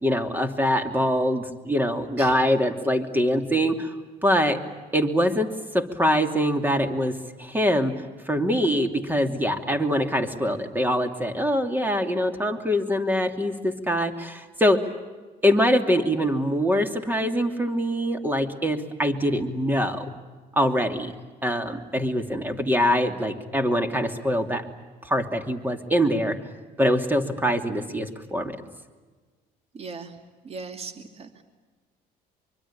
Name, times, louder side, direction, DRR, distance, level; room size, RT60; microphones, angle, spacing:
voice 1, 0.0-3.9 4.2-4.6 4.9-14.9 15.4-20.0 20.6-21.1 21.4-24.6 25.0-26.4 26.8-28.6, equal, 10° right, 6 dB, 2.9 m, -24 dB
voice 2, 29.7-30.1 30.4-31.4, right 4 dB, 35° right, 7 dB, 2.6 m, -38 dB
24.5 x 24.5 x 8.7 m, 1.3 s
cardioid pair, 110°, 17 cm